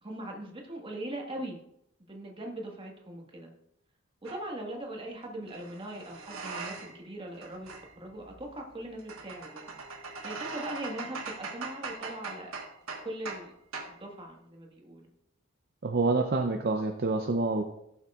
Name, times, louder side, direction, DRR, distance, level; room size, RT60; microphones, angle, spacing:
voice 1, 0.0-1.6 2.1-3.5 4.2-7.7 7.9-9.8 10.2-12.6 13.0-13.5 13.9-15.1, right 1 dB, 25° right, 0 dB, 1.6 m, -40 dB
sound 1, 4.2-4.4 5.5-7.1 7.3-13.5 13.7-14.0, right 4 dB, 80° right, 1.5 m, -41 dB
voice 2, 15.8-17.6, right 3 dB, 50° right, 3 dB, 0.6 m, -27 dB
16.0 x 7.1 x 2.4 m, 0.78 s
head